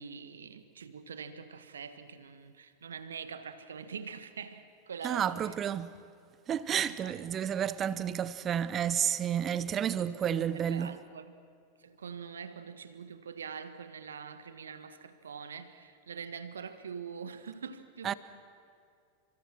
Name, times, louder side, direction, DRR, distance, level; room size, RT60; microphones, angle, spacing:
voice 1, 0.0-5.5 6.9-7.5 9.9-11.3 11.8-18.1, right 6 dB, 70° right, 1.5 m, -44 dB
voice 2, 5.0-5.9 6.5-11.0 18.0-18.1, right 9 dB, 25° right, 0.9 m, -31 dB
30.0 x 25.5 x 6.2 m
figure-of-eight pair, 90°, 0 cm